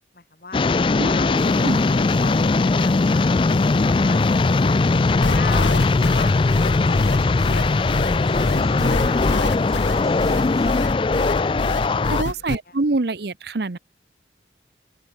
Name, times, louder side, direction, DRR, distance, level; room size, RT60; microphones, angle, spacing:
voice 1, 0.1-0.6 1.0-1.6 1.8-6.3 6.8-11.0 11.3-12.7, left 3 dB, 50° left, 2.2 m, -38 dB
sound 1, 0.5-12.2, left 3 dB, 25° left, 0.3 m, -19 dB
voice 2, 1.0-1.8 12.1-13.8, right 2 dB, 60° right, 0.8 m, -26 dB
sound 2, 1.3-10.8, right 1 dB, 20° right, 7.0 m, -40 dB
sound 3, 5.2-12.5, left 2 dB, 85° left, 1.1 m, -26 dB
open air
head